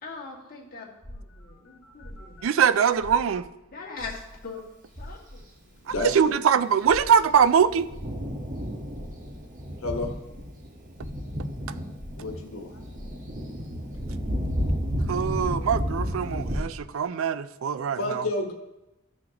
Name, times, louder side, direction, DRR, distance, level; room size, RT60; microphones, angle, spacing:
voice 1, 0.0-3.1 3.7-4.6 5.0-5.4, left 4 dB, 45° left, 2.0 m, -41 dB
sound 1, 1.0-3.7 3.9-11.5 11.9-15.4, equal, 5° right, 2.8 m, -45 dB
voice 2, 1.7-2.5 5.9-6.2 9.8-10.1 12.2-12.8 18.0-18.5, left 2 dB, 85° left, 1.3 m, -31 dB
voice 3, 2.4-3.4 6.0-7.9 15.1-18.2, right 7 dB, 70° right, 0.4 m, -22 dB
Thunder, 6.8-16.6, equal, 40° right, 1.3 m, -32 dB
14.0 x 6.2 x 2.9 m
head